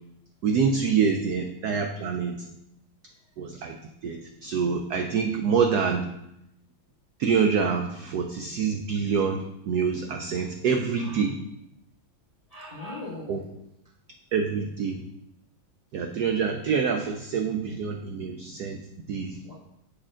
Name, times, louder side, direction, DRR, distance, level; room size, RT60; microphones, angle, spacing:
voice 1, 0.4-2.5 3.4-6.1 7.2-11.4 13.3-13.4 14.3-15.0 15.9-18.8 19.1-19.4, right 6 dB, 80° right, 3 dB, 0.8 m, -26 dB
voice 2, 11.0-11.3 12.5-13.5 19.4-19.5, left 2 dB, 35° left, -5 dB, 0.5 m, -40 dB
7.2 x 4.4 x 3.7 m, 0.82 s
omnidirectional pair, 2.2 m